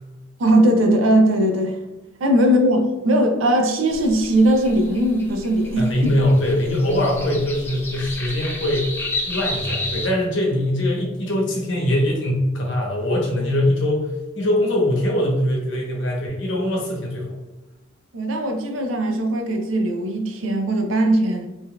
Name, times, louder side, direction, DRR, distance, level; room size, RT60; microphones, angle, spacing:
voice 1, 0.4-1.8 2.2-5.9 18.1-21.5, right 1 dB, 75° right, 0.5 m, -19 dB
sound 1, 3.9-10.1, left 2 dB, 10° left, 0.4 m, -32 dB
voice 2, 5.8-9.0 9.2-14.1 14.3-17.3, left 1 dB, 70° left, 0.9 m, -22 dB
3.7 x 2.7 x 2.2 m
head